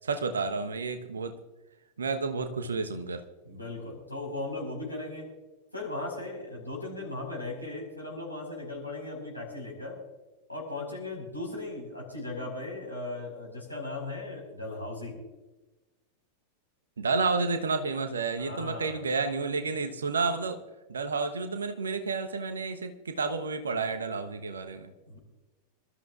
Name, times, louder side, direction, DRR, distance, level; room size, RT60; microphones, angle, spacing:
voice 1, 0.0-1.4 2.0-3.2 17.0-20.6 20.9-24.9, right 4 dB, 70° right, 7 dB, 1.1 m, -30 dB
voice 2, 3.4-5.3 5.7-10.0 10.5-15.2 18.4-19.0 25.1-25.2, left 2 dB, 90° left, -1 dB, 5.0 m, -37 dB
26.5 x 13.0 x 2.5 m, 1.1 s
figure-of-eight pair, 90°, 0 cm